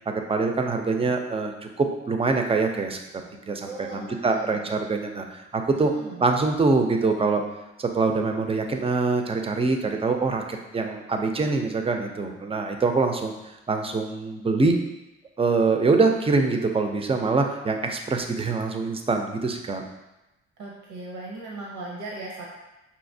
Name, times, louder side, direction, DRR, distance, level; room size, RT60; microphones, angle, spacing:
voice 1, 0.1-3.0 3.5-5.9 6.2-7.4 7.8-13.3 13.7-14.8 15.4-19.8, right 3 dB, 20° right, 4 dB, 0.5 m, -24 dB
voice 2, 3.6-4.7 6.0-6.2 20.6-22.5, right 2 dB, 85° right, -3 dB, 0.8 m, -38 dB
5.7 x 2.8 x 2.7 m, 0.97 s
cardioid pair, 90°, 30 cm